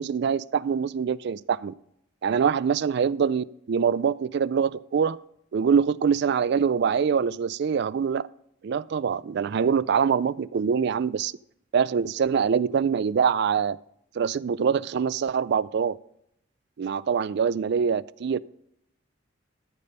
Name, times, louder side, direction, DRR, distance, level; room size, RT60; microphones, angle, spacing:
voice 1, 0.0-1.7 2.2-5.2 5.5-8.3 8.6-11.3 11.7-13.8 14.2-16.0 16.8-18.4, right 6 dB, 55° right, 0.3 m, -24 dB
13.5 x 5.2 x 5.5 m
head